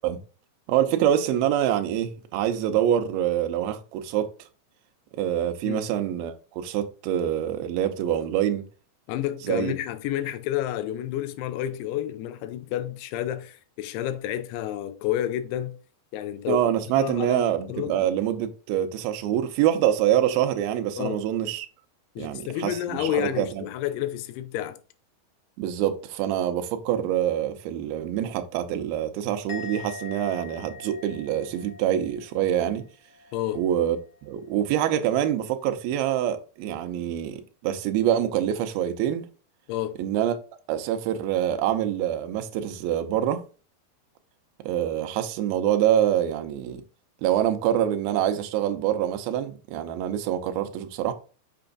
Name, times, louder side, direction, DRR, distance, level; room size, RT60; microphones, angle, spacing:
voice 1, 0.7-4.3 5.2-8.6 9.5-9.7 16.5-21.7 22.2-23.5 25.6-32.8 33.5-34.0 34.2-39.3 40.0-40.4 40.7-43.4 44.6-46.8 47.2-51.1, right 11 dB, 75° right, 2.5 m, -25 dB
voice 2, 9.1-15.8 16.1-16.7 17.0-18.0 21.0-21.2 22.2-24.8 33.3-33.6 39.7-40.0, left 12 dB, 85° left, 2.7 m, -30 dB
Musical instrument, 29.5-32.9 33.1-33.6, left 4 dB, 65° left, 1.0 m, -42 dB
6.8 x 6.1 x 2.5 m
omnidirectional pair, 4.6 m